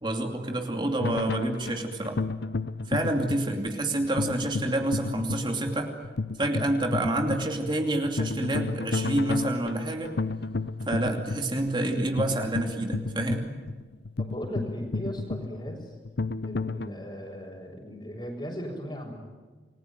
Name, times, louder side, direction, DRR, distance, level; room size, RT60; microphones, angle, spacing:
voice 1, 0.0-2.2 2.9-5.9 6.4-10.1 10.9-13.5, right 1 dB, 25° right, 3 dB, 2.6 m, -28 dB
sound 1, 1.0-16.9, left 3 dB, 65° left, 0.8 m, -32 dB
voice 2, 14.2-16.0 16.4-19.2, equal, 25° left, -4 dB, 5.1 m, -37 dB
29.0 x 21.0 x 9.3 m, 1.4 s
head